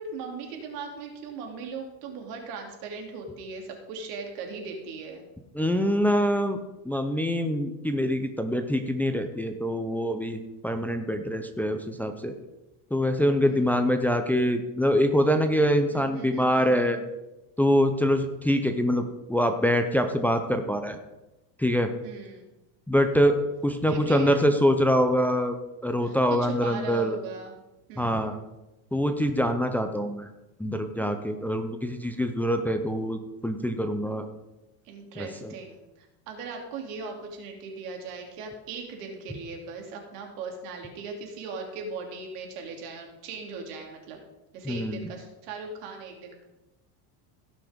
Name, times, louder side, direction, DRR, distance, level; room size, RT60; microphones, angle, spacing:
voice 1, 0.0-5.2 13.4-13.9 15.9-17.0 22.0-22.5 23.9-24.4 26.0-27.5 27.9-28.4 34.8-44.2 44.5-46.4, right 4 dB, 85° right, 2 dB, 3.1 m, -39 dB
voice 2, 5.5-6.6 6.8-12.3 12.9-17.0 17.6-21.0 21.6-21.9 22.9-23.4 23.6-25.6 25.8-27.2 28.0-28.3 28.9-30.3 30.6-34.2 35.2-35.5 44.6-45.1, equal, 5° left, 6 dB, 0.6 m, -24 dB
16.5 x 6.3 x 5.2 m, 1.0 s
cardioid pair, 135°, 45 cm